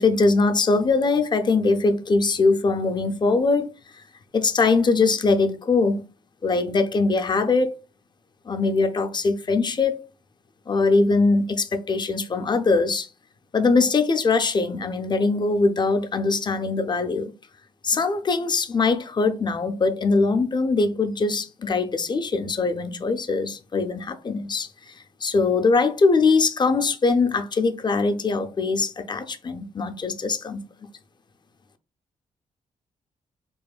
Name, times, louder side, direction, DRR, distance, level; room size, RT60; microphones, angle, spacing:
voice 1, 0.0-3.7 4.3-6.0 6.4-7.7 8.5-10.0 10.7-13.1 13.5-17.3 17.8-24.9 25.2-30.6, left 3 dB, 35° left, 0.4 m, -22 dB
2.9 x 2.1 x 2.3 m
cardioid pair, 60°, 14 cm